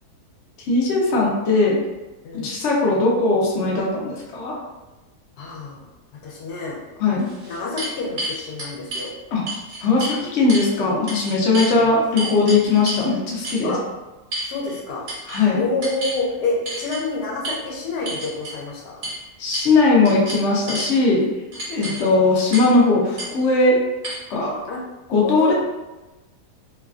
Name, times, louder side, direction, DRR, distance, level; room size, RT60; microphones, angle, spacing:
voice 1, 0.7-1.8 2.3-4.6 7.0-7.3 9.3-9.4 9.8-13.7 15.3-15.6 19.4-21.2 21.7-23.8 24.3-24.6 25.1-25.5, left 3 dB, 60° left, -3 dB, 0.8 m, -19 dB
voice 2, 2.2-2.6 5.4-5.8 6.2-6.8 7.5-9.1 11.5-11.9 13.6-13.8 14.4-15.0 15.5-19.0 21.8-22.0 24.7-24.8 25.2-25.5, left 3 dB, 75° left, -2 dB, 1.2 m, -28 dB
sound 1, 6.6-6.7 7.2-9.1 9.5-10.2 10.5-10.7 11.1-11.7 12.2-13.1 13.4-13.7 14.3-14.8 15.1-15.4 15.8-16.2 16.7-17.0 17.4-17.6 18.1-18.6 19.0-19.2 19.5-19.8 20.1-20.9 21.5-22.0 22.5-22.8 23.2-23.3 24.0-24.1, right 1 dB, 60° right, 1.4 m, -30 dB
3.1 x 2.2 x 2.4 m, 1.1 s
omnidirectional pair, 1.8 m